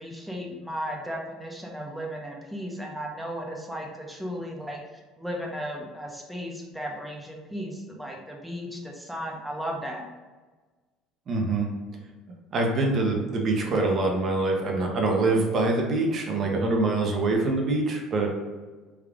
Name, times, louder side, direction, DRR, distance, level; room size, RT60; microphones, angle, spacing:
voice 1, 0.0-10.0, equal, 5° right, -1 dB, 0.7 m, -35 dB
voice 2, 11.3-11.7 12.5-18.3, right 2 dB, 40° right, 1 dB, 0.7 m, -24 dB
3.4 x 2.4 x 3.5 m, 1.3 s
cardioid pair, 125°, 0 cm